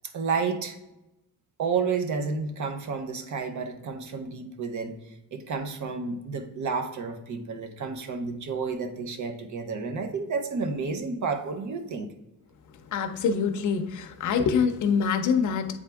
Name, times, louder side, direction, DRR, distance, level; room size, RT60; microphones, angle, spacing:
voice 1, 0.1-0.8 1.6-12.1, right 5 dB, 60° right, 8 dB, 0.7 m, -31 dB
voice 2, 12.9-15.8, left 6 dB, 60° left, 6 dB, 0.6 m, -25 dB
8.3 x 3.5 x 3.4 m, 0.93 s
wide cardioid pair, 180°, 34 cm